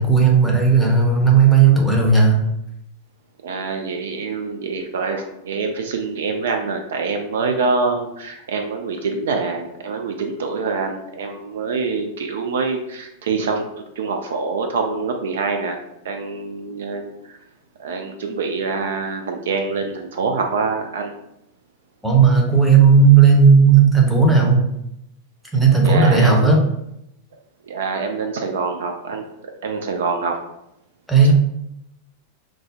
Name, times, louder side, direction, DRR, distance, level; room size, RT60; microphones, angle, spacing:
voice 1, 0.0-2.4 22.0-24.7 25.5-26.6 31.1-31.3, right 5 dB, ahead, -1 dB, 0.7 m, -13 dB
voice 2, 3.4-13.6 14.0-17.4 17.8-21.1 25.8-26.6 27.6-29.3 29.6-30.4, right 4 dB, 60° right, 4 dB, 0.3 m, -25 dB
2.4 x 2.0 x 3.5 m, 0.82 s
figure-of-eight pair, 90°, 0 cm